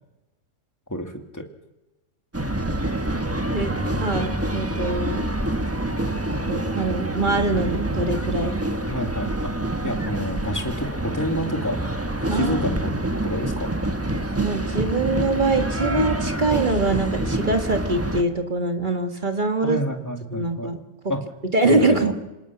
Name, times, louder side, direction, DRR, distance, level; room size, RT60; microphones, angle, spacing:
voice 1, 0.9-1.4 8.9-9.5 9.8-11.8 12.3-13.8 19.6-20.7 21.1-21.3 21.6-22.1, equal, 10° left, 4 dB, 2.0 m, -28 dB
sound 1, 2.3-18.2, right 1 dB, 10° right, 1.1 m, -26 dB
voice 2, 3.5-5.3 6.5-8.5 12.2-12.6 14.4-19.8 20.3-20.8 21.0-21.1 21.5-22.1, right 3 dB, 35° right, 6 dB, 1.7 m, -23 dB
27.0 x 18.5 x 5.9 m, 1.0 s
omnidirectional pair, 1.5 m